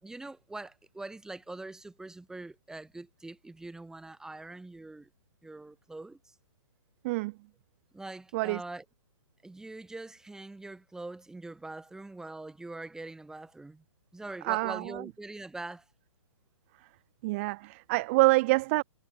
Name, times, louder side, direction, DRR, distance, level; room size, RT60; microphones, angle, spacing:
voice 1, 0.0-5.1 5.4-6.3 7.9-8.8 9.4-13.8 14.1-15.8, right 2 dB, 5° right, 5.5 m, -43 dB
voice 2, 14.4-15.1 17.2-18.8, right 23 dB, 25° right, 0.6 m, -26 dB
hypercardioid pair, 155°, 17 cm